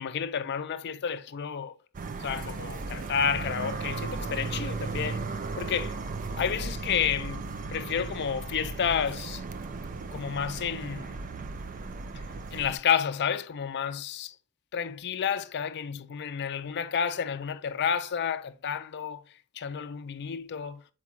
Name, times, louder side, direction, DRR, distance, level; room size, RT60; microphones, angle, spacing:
voice 1, 0.0-1.7 2.2-5.9 6.4-9.4 10.1-11.2 12.5-14.4 14.7-19.2 19.5-20.8, left 7 dB, 50° left, 0.4 m, -30 dB
sound 1, 1.9-12.8, right 3 dB, 35° right, 0.4 m, -36 dB
7.2 x 4.5 x 2.9 m
head